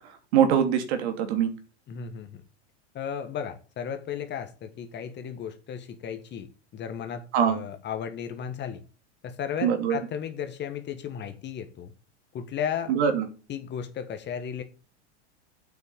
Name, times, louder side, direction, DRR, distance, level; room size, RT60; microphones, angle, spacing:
voice 1, 0.3-1.5 7.3-7.6 9.6-10.0 12.9-13.2, right 8 dB, 65° right, 7 dB, 3.0 m, -23 dB
voice 2, 1.9-2.4 2.9-8.8 9.2-11.9 12.3-12.9 13.5-14.6, left 8 dB, 30° left, 8 dB, 1.5 m, -35 dB
7.8 x 6.4 x 7.3 m, 0.35 s
hypercardioid pair, 120°, 35 cm